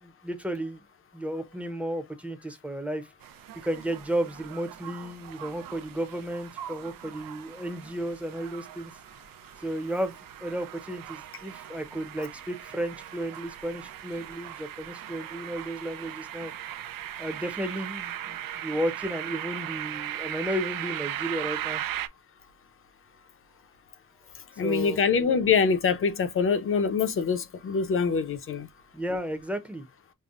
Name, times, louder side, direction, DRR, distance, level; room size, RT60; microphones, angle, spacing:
voice 1, 0.0-0.8 1.1-3.1 3.6-8.9 9.6-10.2 10.4-16.5 17.2-21.8 24.5-25.0 28.9-29.9, right 1 dB, 5° right, 0.6 m, -33 dB
sound 1, 3.2-22.1, right 12 dB, 85° right, 0.5 m, -38 dB
voice 2, 24.6-28.7, left 5 dB, 40° left, 0.6 m, -24 dB
5.4 x 2.1 x 2.4 m
wide cardioid pair, 175°, 33 cm